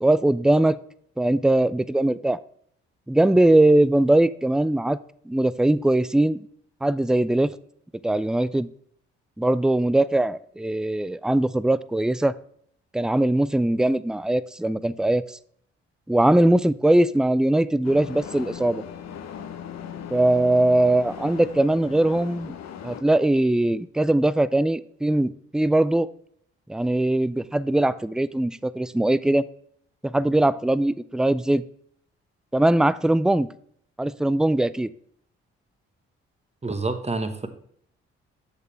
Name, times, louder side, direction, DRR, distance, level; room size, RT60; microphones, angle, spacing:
voice 1, 0.0-0.8 1.2-2.4 3.1-5.0 5.3-6.4 6.8-7.5 8.0-8.7 9.4-12.3 12.9-15.4 16.1-18.8 20.1-22.6 22.8-26.1 26.7-29.4 30.0-31.6 32.5-33.5 34.0-34.9, right 1 dB, ahead, 17 dB, 0.4 m, -21 dB
sound 1, 17.8-23.0, left 8 dB, 60° left, 0.9 m, -38 dB
voice 2, 36.6-37.5, right 3 dB, 20° right, 8 dB, 1.3 m, -28 dB
8.2 x 6.7 x 3.3 m, 0.65 s
hypercardioid pair, 45°, 30 cm